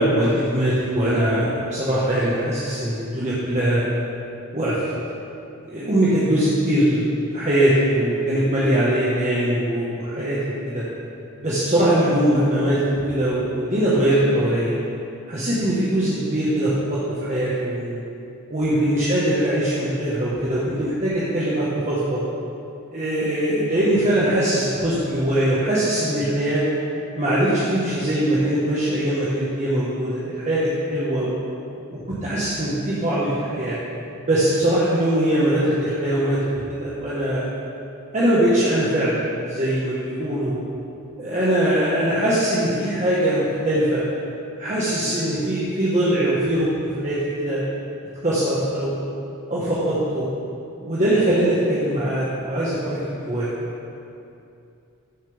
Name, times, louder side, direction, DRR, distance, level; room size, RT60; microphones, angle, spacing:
voice 1, 0.0-3.8 4.5-4.8 5.7-7.0 7.3-10.8 11.4-12.8 13.1-14.7 15.3-18.0 18.5-22.2 22.9-26.6 27.2-31.4 31.9-33.8 34.2-37.5 38.1-40.6 41.2-44.0 44.6-47.6 48.2-49.1 49.5-50.2 50.8-53.5, right 1 dB, 35° right, -9 dB, 1.4 m, -21 dB
14.0 x 7.3 x 3.5 m, 2.6 s
head